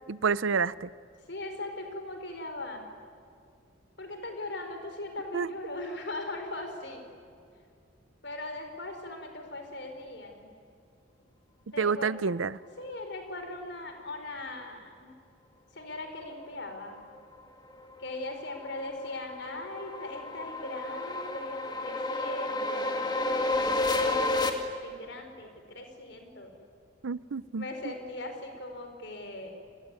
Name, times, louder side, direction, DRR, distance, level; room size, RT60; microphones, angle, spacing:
voice 1, 0.1-0.9 5.3-5.5 11.8-12.6 27.0-27.7, right 5 dB, 75° right, 19 dB, 0.6 m, -28 dB
voice 2, 1.3-2.9 4.0-7.0 8.2-10.5 11.7-12.2 12.8-15.1 15.7-17.0 18.0-26.5 27.6-29.5, left 2 dB, 55° left, 5 dB, 4.6 m, -40 dB
sound 1, 17.9-24.5, left 2 dB, 20° left, 2.1 m, -31 dB
29.5 x 20.5 x 9.8 m, 2.4 s
head